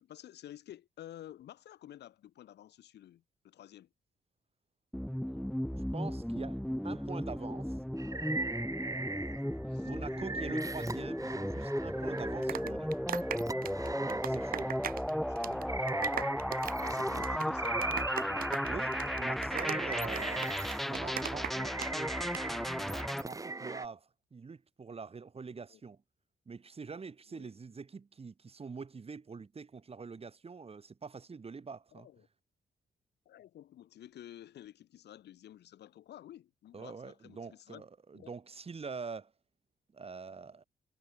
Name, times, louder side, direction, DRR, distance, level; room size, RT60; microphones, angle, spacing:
voice 1, 0.0-3.9 9.7-10.4 15.3-15.7 16.0-16.3 16.8-17.9 18.3-18.6 25.7-25.8 27.3-27.5 31.9-32.3 33.3-37.8 38.1-38.3, left 12 dB, 85° left, 4.0 m, -51 dB
sound 1, 4.9-23.2, equal, ahead, 0.5 m, -35 dB
voice 2, 5.9-7.8 9.8-13.1 14.0-14.8 18.7-20.6 20.9-26.0 26.5-32.1 36.7-39.3 39.9-40.6, right 5 dB, 35° right, 4.4 m, -45 dB
sound 2, 8.0-9.5 9.8-15.0 15.5-23.9, right 3 dB, 20° right, 2.1 m, -40 dB
sound 3, 12.2-15.1 15.4-15.6 15.9-21.9 22.2-22.4, right 10 dB, 60° right, 0.6 m, -39 dB
cardioid pair, 95°, 17 cm